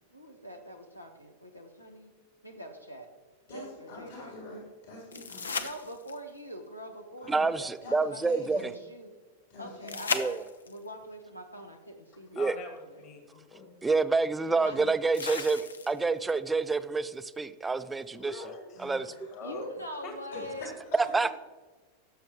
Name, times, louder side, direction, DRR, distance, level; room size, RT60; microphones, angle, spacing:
voice 1, 0.1-2.1 2.4-3.1 3.5-4.3 5.6-9.1 9.6-10.4 10.6-13.0 14.6-14.8 19.4-20.7, equal, 85° left, 5 dB, 1.3 m, -44 dB
voice 2, 3.5-5.6 7.2-8.7 9.5-10.2 14.5-14.9 18.7-19.4 20.3-21.2, left 2 dB, 55° left, -3 dB, 3.8 m, -47 dB
sound 1, 5.1-6.4 9.9-10.9 12.8-12.9 15.1-16.2 19.1-19.2, left 5 dB, 70° left, 0.6 m, -35 dB
voice 3, 7.3-8.6 10.1-10.4 12.3-12.6 13.8-18.4 18.8-19.1 21.1-21.3, right 4 dB, 10° right, 12 dB, 0.5 m, -28 dB
voice 4, 12.4-13.9 18.1-19.7 20.0-20.4, left 4 dB, 40° left, 4 dB, 2.2 m, -44 dB
18.0 x 7.0 x 3.1 m, 1.3 s
figure-of-eight pair, 90°, 0 cm